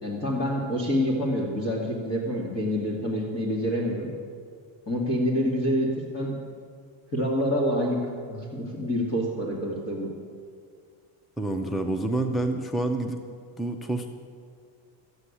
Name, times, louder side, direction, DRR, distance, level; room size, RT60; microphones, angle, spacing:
voice 1, 0.0-4.1 4.9-6.3 7.1-10.1, equal, 30° left, -3 dB, 2.4 m, -27 dB
voice 2, 11.4-13.2 13.6-14.1, right 2 dB, ahead, 6 dB, 0.6 m, -28 dB
13.5 x 8.8 x 9.8 m, 2.1 s
cardioid pair, 155°, 46 cm